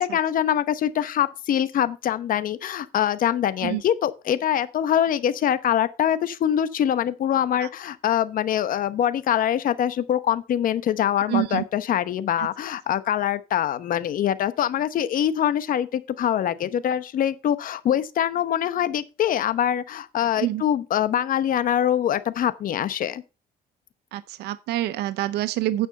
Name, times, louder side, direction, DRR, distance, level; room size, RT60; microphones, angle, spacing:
voice 1, 0.0-23.2, left 10 dB, 55° left, 0.9 m, -24 dB
voice 2, 11.3-11.6 12.4-12.5 20.4-20.6 24.1-25.9, right 14 dB, 80° right, 0.6 m, -26 dB
9.3 x 6.3 x 5.4 m
cardioid pair, 110°, 17 cm